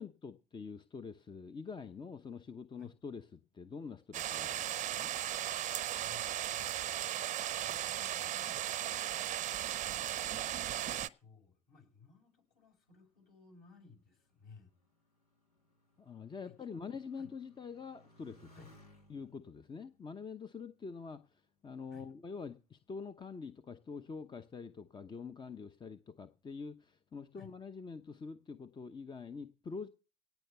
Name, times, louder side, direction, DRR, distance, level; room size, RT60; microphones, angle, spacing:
voice 1, 0.0-5.1 16.0-18.5 19.1-29.9, left 5 dB, 25° left, 11 dB, 0.8 m, -46 dB
sound 1, 4.1-11.1, right 12 dB, 40° right, 0.7 m, -36 dB
voice 2, 6.0-8.9 9.7-14.7 16.4-17.4 18.6-18.8 21.9-22.1 27.3-27.5, left 4 dB, 55° left, 2 dB, 7.0 m, -60 dB
Motorcycle, 12.7-21.7 22.4-23.0, equal, 85° left, 2.0 m, -66 dB
17.5 x 6.0 x 6.7 m, 0.35 s
hypercardioid pair, 65°, 19 cm